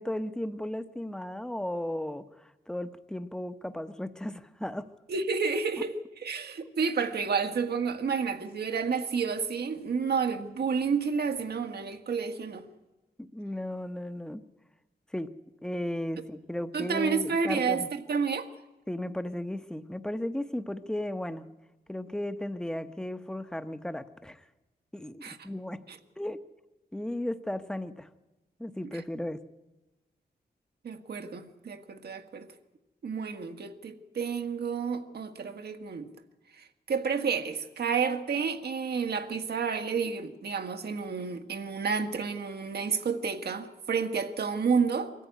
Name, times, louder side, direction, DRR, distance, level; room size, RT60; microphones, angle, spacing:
voice 1, 0.0-4.9 13.2-14.4 15.1-15.3 15.6-17.9 18.9-21.5 21.9-24.4 24.9-25.8 26.2-26.4 26.9-28.1 28.6-29.4, left 1 dB, 5° left, 0.9 m, -35 dB
voice 2, 5.1-12.7 16.7-18.5 25.2-25.5 25.9-26.0 28.9-29.0 30.8-32.5 33.0-36.1 36.5-45.1, right 5 dB, 75° right, 1.6 m, -30 dB
23.0 x 14.0 x 9.4 m
wide cardioid pair, 120°, 17 cm